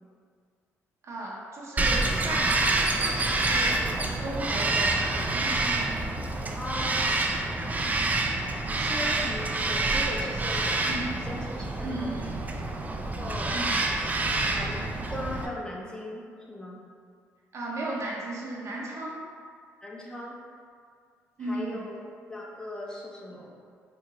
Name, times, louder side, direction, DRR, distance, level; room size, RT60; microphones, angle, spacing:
voice 1, 1.0-3.8 4.2-6.1 10.9-11.1 11.8-12.4 13.5-13.8 17.5-19.1 21.4-21.8, right 1 dB, 55° right, -5 dB, 0.7 m, -35 dB
Bird vocalization bird call bird song, 1.8-15.5, right 2 dB, 25° right, 0.3 m, -27 dB
voice 2, 6.5-7.2 8.7-10.9 11.2-12.1 13.0-13.6 14.5-14.8 15.1-16.2 16.5-16.8 19.8-20.4 21.4-21.9 22.3-23.5, left 1 dB, 15° left, -3 dB, 0.7 m, -38 dB
3.7 x 2.2 x 2.9 m, 2.1 s
supercardioid pair, 60°, 6 cm